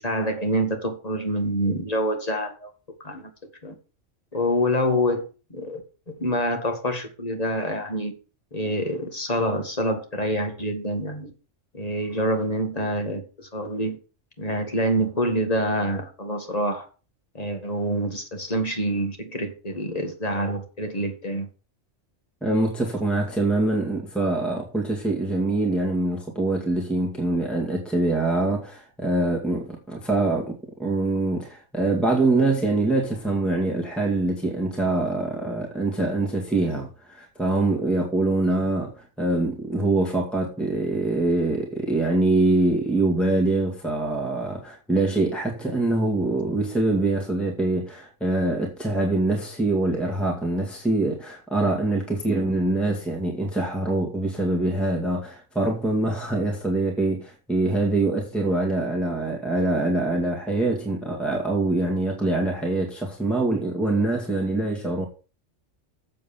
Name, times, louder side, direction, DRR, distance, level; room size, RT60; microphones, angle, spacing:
voice 1, 0.0-2.7 3.0-3.3 3.6-3.7 4.3-5.8 6.1-8.2 8.5-11.3 11.7-14.0 14.4-16.9 17.3-21.5, equal, 30° left, 2.1 m, -26 dB
voice 2, 22.4-65.1, right 2 dB, ahead, 2.0 m, -24 dB
7.8 x 7.5 x 7.2 m
omnidirectional pair, 1.3 m